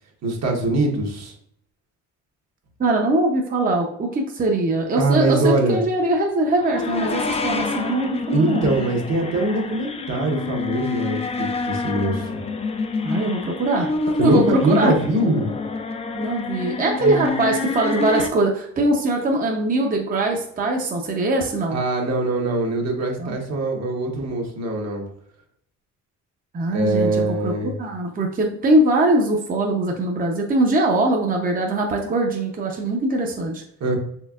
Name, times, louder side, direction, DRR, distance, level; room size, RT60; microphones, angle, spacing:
voice 1, 0.2-1.3 5.0-5.8 8.3-12.4 14.2-15.5 17.0-17.4 21.7-25.0 26.7-27.8 33.8-34.0, right 2 dB, 60° right, 1 dB, 1.1 m, -22 dB
voice 2, 2.8-8.7 13.0-14.9 16.1-21.8 23.2-23.4 26.5-27.5 27.8-33.6, right 2 dB, 30° right, 1 dB, 0.6 m, -22 dB
sound 1, 6.5-18.3, left 4 dB, 20° left, 0.4 m, -27 dB
4.4 x 3.3 x 2.4 m, 0.70 s
cardioid pair, 90°, 30 cm